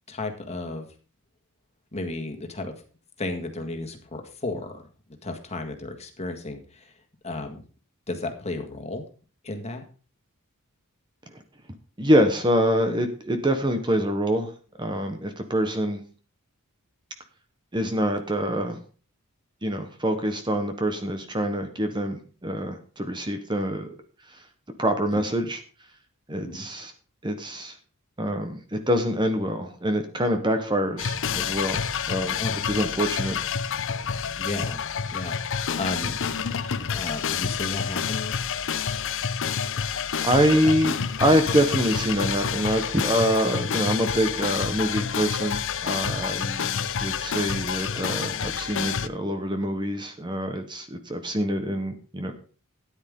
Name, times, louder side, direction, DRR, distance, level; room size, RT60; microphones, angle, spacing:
voice 1, 0.1-0.9 1.9-2.7 3.2-4.8 5.2-6.9 7.2-7.6 8.1-9.0 9.4-9.8 25.1-25.2 26.4-26.7 32.4-32.6 34.4-34.8 35.1-36.2 36.9-38.4 40.6-40.7, left 2 dB, 30° left, 5 dB, 1.9 m, -33 dB
voice 2, 12.0-14.5 14.8-16.0 17.7-18.8 19.6-23.9 24.8-25.6 26.3-26.9 27.2-27.8 28.2-31.8 32.1-32.4 32.6-33.4 40.2-52.3, equal, 20° right, 7 dB, 1.1 m, -25 dB
sound 1, 31.0-49.1, left 7 dB, 60° left, 0.7 m, -28 dB
13.0 x 10.0 x 3.7 m, 0.39 s
head